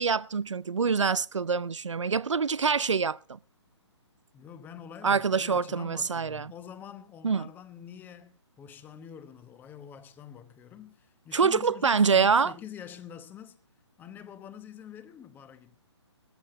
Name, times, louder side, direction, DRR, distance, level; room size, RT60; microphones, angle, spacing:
voice 1, 0.0-3.4 5.0-6.5 7.2-7.5 11.3-12.5, right 5 dB, 90° right, 0.6 m, -25 dB
voice 2, 4.3-13.6 14.0-15.8, left 8 dB, 10° left, 1.0 m, -46 dB
16.0 x 14.0 x 4.2 m
hypercardioid pair, 145°, 15 cm